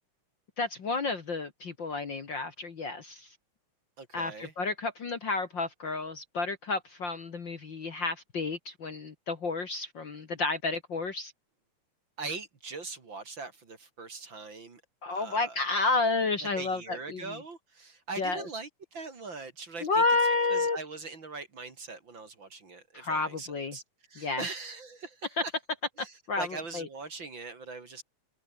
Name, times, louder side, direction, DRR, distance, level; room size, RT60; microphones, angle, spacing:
voice 1, 0.6-3.3 4.1-11.3 15.0-17.2 18.2-18.4 19.8-20.8 22.9-23.8 24.2-24.4 26.3-26.5 26.7-26.9, left 3 dB, 45° left, 2.3 m, -30 dB
voice 2, 4.0-4.5 12.2-14.8 15.1-15.6 16.4-20.0 20.5-23.8 24.1-25.5 26.0-28.0, right 4 dB, 40° right, 3.5 m, -41 dB
omnidirectional pair, 3.3 m